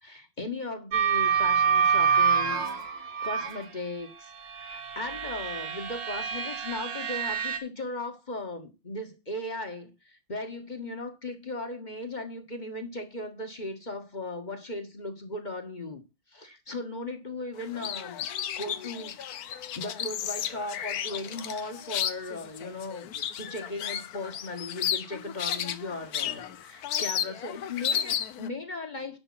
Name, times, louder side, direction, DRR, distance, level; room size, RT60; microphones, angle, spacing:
voice 1, 0.0-16.0 16.3-18.3 18.5-29.2, left 2 dB, 25° left, 1.4 m, -37 dB
sound 1, 0.9-3.7 4.4-7.6, right 6 dB, 60° right, 2.0 m, -27 dB
sound 2, 17.6-28.5, left 9 dB, 65° left, 1.0 m, -33 dB
11.0 x 5.5 x 5.6 m
omnidirectional pair, 2.3 m